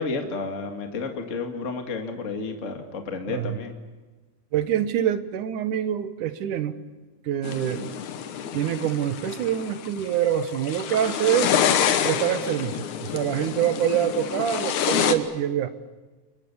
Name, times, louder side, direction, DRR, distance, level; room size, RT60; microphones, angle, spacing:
voice 1, 0.0-3.7, left 4 dB, 25° left, 4 dB, 2.3 m, -31 dB
voice 2, 4.5-6.8 7.3-7.9 8.5-11.5 12.0-15.7, right 10 dB, 90° right, 11 dB, 2.8 m, -25 dB
sound 1, 7.4-15.1, left 8 dB, 75° left, 2.7 m, -27 dB
30.0 x 23.0 x 7.1 m, 1.3 s
omnidirectional pair, 3.5 m